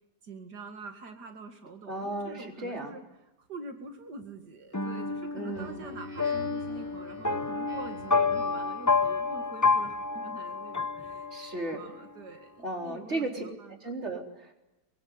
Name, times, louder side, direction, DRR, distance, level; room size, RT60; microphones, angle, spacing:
voice 1, 0.2-3.0 3.4-13.8, right 3 dB, 90° right, 6 dB, 2.7 m, -45 dB
voice 2, 1.9-3.0 5.3-5.8 11.3-11.8 12.6-13.4 13.8-14.5, right 2 dB, 40° right, 3 dB, 4.2 m, -35 dB
sound 1, 4.7-11.7, left 4 dB, 15° left, 0.7 m, -29 dB
Speech synthesizer, 5.5-8.9, right 2 dB, 20° right, 4.4 m, -47 dB
23.5 x 23.5 x 9.7 m, 0.99 s
omnidirectional pair, 1.7 m